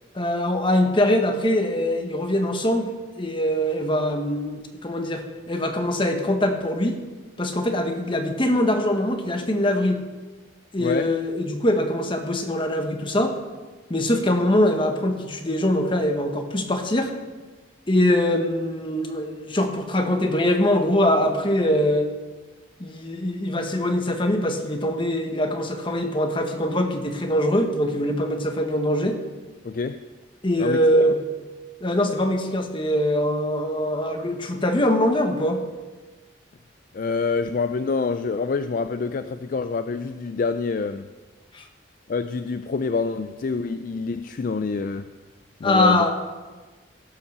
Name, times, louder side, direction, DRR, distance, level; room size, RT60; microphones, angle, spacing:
voice 1, 0.2-7.0 7.4-10.0 10.7-13.3 13.9-17.1 17.9-22.1 22.8-29.2 30.4-31.2 31.8-35.6 41.5-41.6 45.6-46.1, left 1 dB, 25° left, 4 dB, 1.2 m, -23 dB
voice 2, 10.8-11.1 29.6-30.0 30.6-30.8 36.9-41.1 42.1-45.1 45.6-46.1, left 4 dB, 45° left, 10 dB, 0.3 m, -26 dB
16.5 x 5.7 x 6.5 m, 1.3 s
head